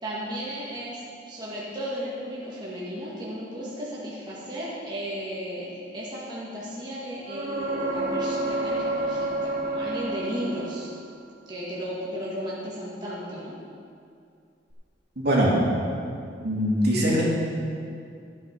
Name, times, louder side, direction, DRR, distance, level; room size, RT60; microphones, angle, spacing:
voice 1, 0.0-10.9 11.5-13.6, equal, 25° right, -7 dB, 1.9 m, -35 dB
sound 1, 7.3-11.0 14.7-14.8, right 2 dB, 40° right, 1.9 m, -29 dB
voice 2, 15.2-15.6 16.4-17.2, equal, 60° right, -5 dB, 3.0 m, -22 dB
13.5 x 8.8 x 5.2 m, 2.4 s
head